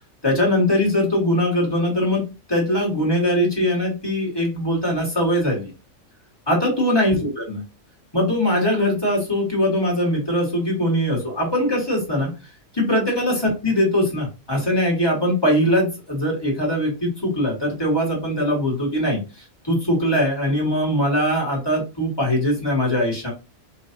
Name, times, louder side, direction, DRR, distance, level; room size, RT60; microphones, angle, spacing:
voice 1, 0.2-2.2 2.5-5.7 6.5-7.6 8.1-12.3 12.7-19.2 19.6-23.3, left 1 dB, 20° left, -2 dB, 2.2 m, -21 dB
4.8 x 3.2 x 2.9 m, 0.30 s
omnidirectional pair, 1.3 m